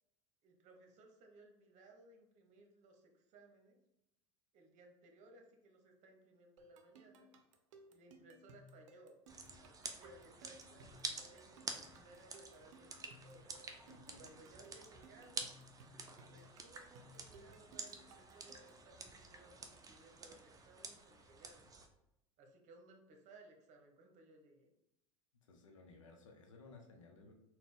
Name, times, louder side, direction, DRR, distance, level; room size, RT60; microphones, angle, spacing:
voice 1, 0.4-3.8 4.5-7.3 7.9-9.2 9.6-13.5 14.2-15.5 16.2-21.9 22.4-24.7, right 2 dB, 50° right, 3 dB, 0.9 m, -62 dB
sound 1, 6.6-18.9, right 1 dB, 75° right, 0.5 m, -61 dB
sound 2, 9.3-21.9, right 4 dB, 20° right, 0.6 m, -50 dB
voice 2, 13.7-14.4 25.4-27.3, left 3 dB, 85° left, 3 dB, 0.7 m, -59 dB
3.9 x 2.2 x 3.6 m, 0.86 s
hypercardioid pair, 80°, 16 cm